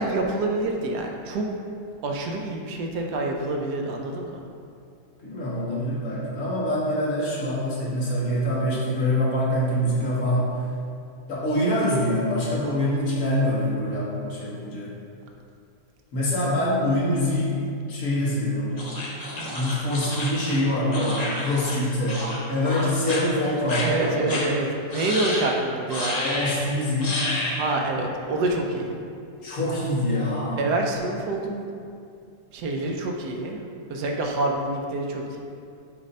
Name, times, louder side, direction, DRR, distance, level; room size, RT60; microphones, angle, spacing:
voice 1, 0.0-1.5 2.0-4.4 19.4-19.6 23.8-26.2 27.5-28.9 30.6-31.7 32.5-35.4, right 2 dB, 75° right, 1 dB, 1.2 m, -27 dB
voice 2, 5.2-10.6 11.3-14.9 16.1-17.6 17.9-18.8 19.5-24.2 26.1-27.2 29.4-30.6, left 1 dB, 55° left, -6 dB, 1.6 m, -25 dB
sound 1, 18.8-21.8 22.1-22.4 22.7-23.2 23.7-23.8 24.3-24.4 24.9-25.5 25.9-26.6 27.0-27.6, left 1 dB, 35° left, 0.6 m, -30 dB
7.2 x 2.6 x 5.3 m, 2.4 s
omnidirectional pair, 1.8 m